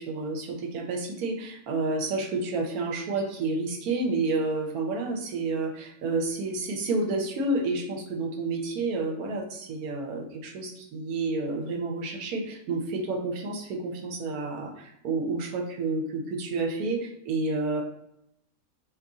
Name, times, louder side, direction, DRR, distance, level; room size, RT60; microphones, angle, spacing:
voice 1, 0.0-17.8, right 3 dB, 65° right, 1 dB, 1.1 m, -30 dB
3.0 x 2.6 x 3.5 m, 0.78 s
omnidirectional pair, 1.8 m